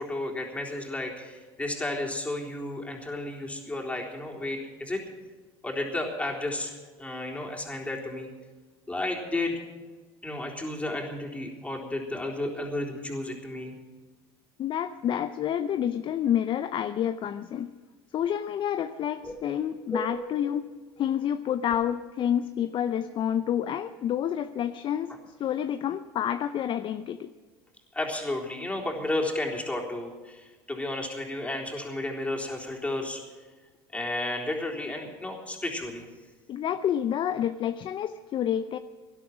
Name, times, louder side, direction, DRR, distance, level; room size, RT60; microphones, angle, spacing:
voice 1, 0.0-5.0 5.6-8.3 8.9-9.5 10.2-13.7 19.2-19.4 19.9-20.3 27.9-33.2 33.9-36.1, left 2 dB, 10° left, -1 dB, 3.8 m, -32 dB
voice 2, 14.6-17.7 18.1-20.7 21.0-25.1 25.4-27.3 36.5-38.8, left 10 dB, 40° left, 10 dB, 0.6 m, -29 dB
18.0 x 11.5 x 6.1 m, 1.4 s
hypercardioid pair, 90°, 12 cm